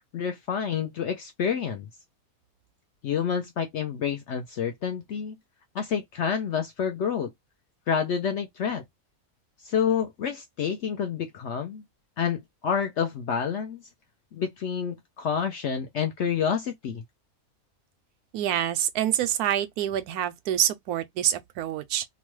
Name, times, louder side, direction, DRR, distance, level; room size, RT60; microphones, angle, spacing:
voice 1, 0.1-1.9 3.0-5.4 5.7-7.3 7.9-8.8 9.6-11.8 12.2-13.8 14.3-17.0, left 7 dB, 65° left, 0.7 m, -28 dB
voice 2, 18.3-22.1, right 11 dB, 85° right, 1.1 m, -26 dB
2.9 x 2.2 x 3.0 m
omnidirectional pair, 1.6 m